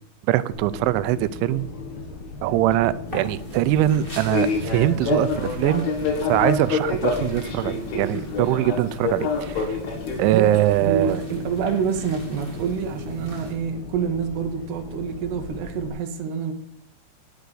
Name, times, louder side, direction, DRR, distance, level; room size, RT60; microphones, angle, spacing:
voice 1, 0.3-1.7 2.4-5.9 6.3-9.8 10.2-11.2, right 14 dB, 85° right, 2.9 m, -22 dB
Fixed-wing aircraft airplane, 0.5-15.9, left 4 dB, 85° left, 4.6 m, -30 dB
sound 1, 3.1-13.5, equal, 70° left, 0.5 m, -39 dB
voice 2, 10.8-16.5, right 6 dB, 70° right, 3.2 m, -27 dB
10.5 x 10.5 x 4.9 m
omnidirectional pair, 5.4 m